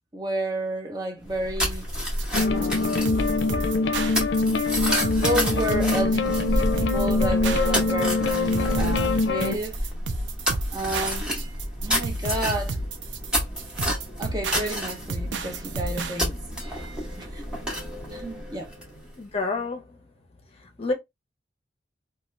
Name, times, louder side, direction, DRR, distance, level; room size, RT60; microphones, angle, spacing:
voice 1, 0.1-1.9 2.5-3.2 4.7-9.9 10.7-11.5 11.8-12.8 14.2-16.4 17.2-17.5 18.1-18.7, right 1 dB, 20° right, 0.6 m, -31 dB
sound 1, 1.2-19.1, equal, 5° right, 0.9 m, -30 dB
sound 2, 2.2-16.2, right 2 dB, 75° right, 0.5 m, -32 dB
sound 3, 2.3-9.6, left 3 dB, 75° left, 0.5 m, -24 dB
voice 2, 19.2-20.0 20.8-20.9, left 3 dB, 35° left, 0.7 m, -28 dB
2.7 x 2.3 x 3.1 m
head